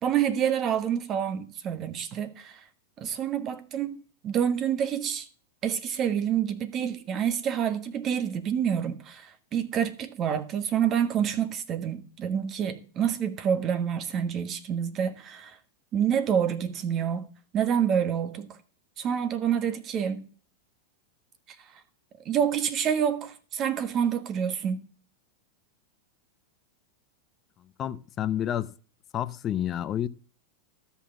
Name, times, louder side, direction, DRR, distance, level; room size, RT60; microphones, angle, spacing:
voice 1, 0.0-2.6 3.0-3.9 4.2-5.3 5.6-15.6 15.9-17.3 17.5-18.6 19.0-20.3 22.2-24.8, right 8 dB, 35° right, 1.3 m, -27 dB
voice 2, 27.8-28.7 29.1-30.1, left 11 dB, 30° left, 0.6 m, -29 dB
13.0 x 5.7 x 7.0 m
hypercardioid pair, 115°, 0 cm